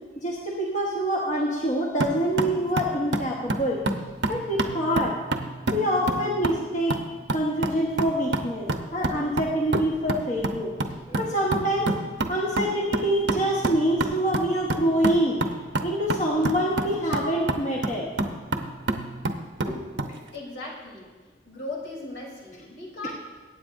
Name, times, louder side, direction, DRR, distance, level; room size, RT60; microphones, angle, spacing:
voice 1, 0.2-3.8 4.3-5.1 5.7-7.0 7.3-8.7 8.9-10.7 11.1-11.9 12.3-15.4 15.8-18.1, equal, 45° left, -3 dB, 1.3 m, -25 dB
sound 1, 2.0-20.2, right 2 dB, 80° right, 0.9 m, -30 dB
voice 2, 20.3-21.1 21.5-23.1, left 2 dB, 80° left, -3 dB, 3.4 m, -37 dB
23.0 x 9.0 x 2.6 m, 1.4 s
head